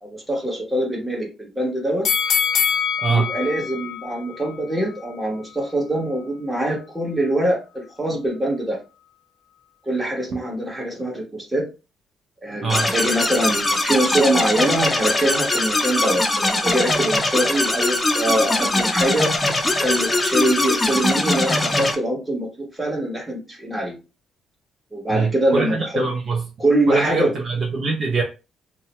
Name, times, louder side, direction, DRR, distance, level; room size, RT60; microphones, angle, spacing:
voice 1, 0.0-2.0 3.1-8.8 9.9-11.6 12.4-19.3 19.7-23.9 24.9-26.1 26.6-27.3, right 1 dB, 15° right, 1.3 m, -23 dB
sound 1, 2.0-5.1 5.6-5.7, left 7 dB, 65° left, 0.5 m, -24 dB
voice 2, 12.6-12.9 25.1-26.4 26.9-28.2, right 4 dB, 55° right, 0.6 m, -23 dB
sound 2, 12.7-22.0, left 2 dB, 15° left, 0.5 m, -21 dB
2.7 x 2.2 x 2.9 m
cardioid pair, 90°, 0 cm